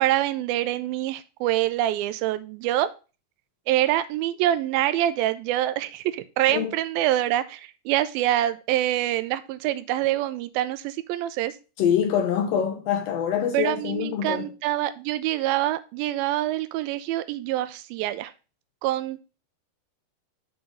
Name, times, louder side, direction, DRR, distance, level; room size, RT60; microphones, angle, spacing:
voice 1, 0.0-2.9 3.7-11.6 13.5-18.3 18.8-19.2, right 14 dB, 90° right, 2.4 m, -25 dB
voice 2, 11.8-14.5, left 8 dB, 85° left, 1.4 m, -25 dB
6.9 x 3.9 x 6.3 m
omnidirectional pair, 4.1 m